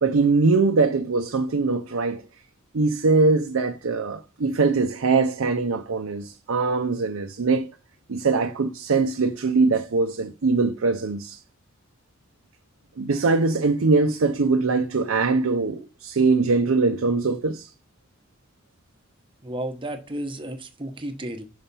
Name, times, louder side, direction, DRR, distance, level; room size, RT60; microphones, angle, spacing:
voice 1, 0.0-2.2 2.7-7.7 8.1-11.4 13.0-17.7, right 3 dB, 70° right, 0.6 m, -22 dB
voice 2, 19.4-21.4, right 1 dB, 25° right, 1.0 m, -33 dB
5.6 x 5.6 x 5.4 m
head